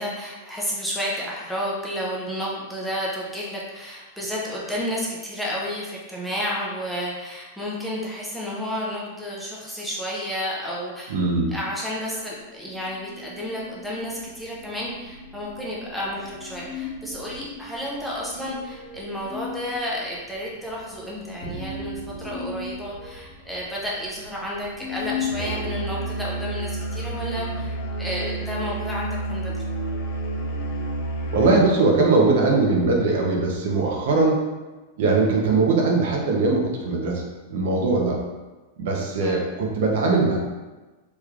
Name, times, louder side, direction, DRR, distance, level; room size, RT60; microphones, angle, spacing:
voice 1, 0.0-11.1 11.5-29.7 39.2-39.4, equal, ahead, -6 dB, 0.4 m, -31 dB
voice 2, 11.1-11.5 31.3-34.4 35.0-37.2 37.5-38.2 38.8-40.4, right 3 dB, 60° right, -1 dB, 0.6 m, -20 dB
sound 1, 12.6-31.8, left 3 dB, 45° left, 1.2 m, -38 dB
Musical instrument, 25.3-31.7, right 2 dB, 75° left, 0.6 m, -30 dB
3.3 x 3.1 x 2.4 m, 1.2 s
supercardioid pair, 170°, 0 cm